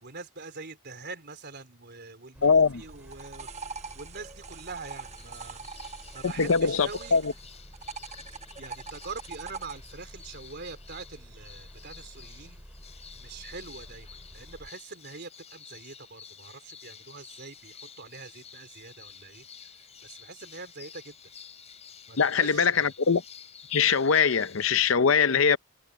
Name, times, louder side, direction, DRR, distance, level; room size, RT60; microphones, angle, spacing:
voice 1, 0.0-5.6 6.1-7.2 8.6-12.6 13.2-19.5 20.0-21.1 22.1-22.9, right 4 dB, 55° right, 3.9 m, -44 dB
sound 1, 2.3-14.7, equal, 10° right, 5.5 m, -50 dB
voice 2, 2.4-2.8 6.4-7.2 22.2-23.2 23.7-25.6, left 6 dB, 70° left, 0.7 m, -22 dB
sound 2, 2.8-7.4 7.7-9.8, right 5 dB, 35° right, 1.1 m, -43 dB
swallows in maya temple, 5.0-24.9, left 7 dB, 35° left, 4.0 m, -51 dB
head